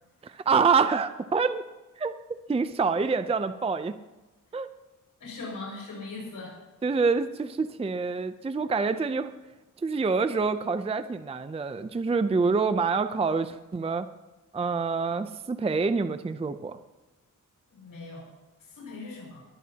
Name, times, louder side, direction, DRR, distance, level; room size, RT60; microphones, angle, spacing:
voice 1, 0.2-1.6 2.0-2.1 2.5-3.9 4.5-4.7 6.8-9.3 9.8-14.1 14.5-16.8, right 4 dB, 20° right, 10 dB, 0.5 m, -26 dB
voice 2, 5.2-6.6 17.7-18.3 18.7-19.4, left 3 dB, 85° left, -3 dB, 5.8 m, -40 dB
21.5 x 13.0 x 2.9 m, 1.1 s
wide cardioid pair, 120°, 33 cm